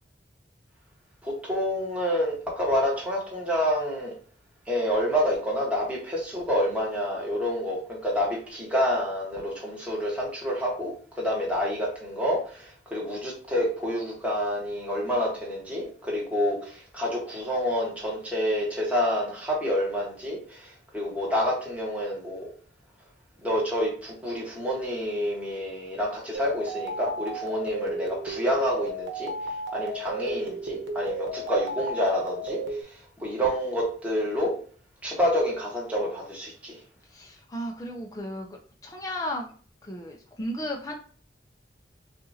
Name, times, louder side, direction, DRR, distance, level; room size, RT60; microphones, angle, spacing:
voice 1, 1.2-4.1 4.7-22.5 23.4-29.3 29.7-34.5 35.0-36.8, equal, 10° right, -4 dB, 1.3 m, -28 dB
sound 1, 26.3-32.8, right 2 dB, 90° right, 1.0 m, -34 dB
voice 2, 37.1-39.5 39.8-40.9, equal, 20° left, 0 dB, 0.5 m, -35 dB
6.7 x 2.5 x 2.8 m, 0.43 s
head